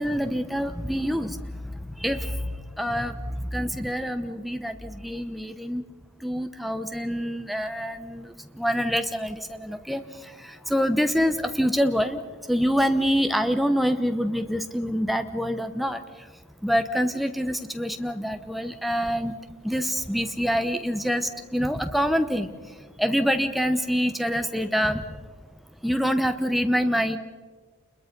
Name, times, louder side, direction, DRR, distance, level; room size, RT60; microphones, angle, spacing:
voice 1, 0.0-5.8 6.2-16.3 16.6-19.3 19.6-25.2 25.8-27.2, equal, ahead, 7 dB, 0.9 m, -26 dB
29.0 x 21.5 x 5.3 m, 1.5 s
head